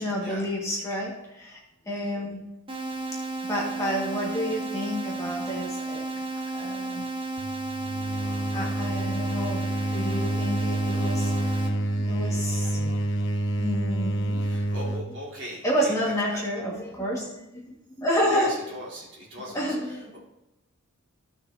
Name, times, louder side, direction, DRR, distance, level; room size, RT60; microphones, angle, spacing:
voice 1, 0.0-1.6 1.9-2.5 3.5-6.0 6.5-7.0 8.5-13.1 13.6-14.5 15.6-18.6 19.5-20.1, equal, 15° left, -5 dB, 2.0 m, -30 dB
sound 1, 2.7-11.7, right 2 dB, 25° right, 1.0 m, -33 dB
sound 2, 7.4-15.1, right 1 dB, 55° left, 1.0 m, -28 dB
voice 2, 14.3-16.4 18.3-20.2, equal, 55° right, -6 dB, 3.9 m, -39 dB
15.5 x 6.3 x 2.9 m, 0.93 s
head